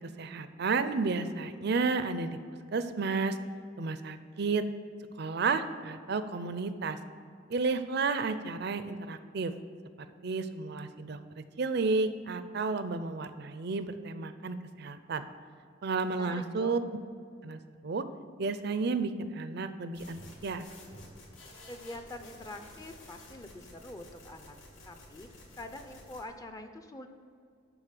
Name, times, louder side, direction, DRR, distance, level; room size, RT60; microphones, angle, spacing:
voice 1, 0.2-2.4 2.7-3.4 3.8-4.7 5.2-7.0 7.5-9.5 10.2-15.2 15.8-16.8 17.4-18.0 18.4-20.6, right 4 dB, 60° right, 11 dB, 0.5 m, -32 dB
voice 2, 16.1-16.8 21.7-24.6 24.8-25.3 25.6-27.1, left 1 dB, 20° left, 6 dB, 0.6 m, -45 dB
sound 1, 19.9-26.2, left 1 dB, 90° left, 2.2 m, -52 dB
12.0 x 4.1 x 7.4 m, 2.3 s
head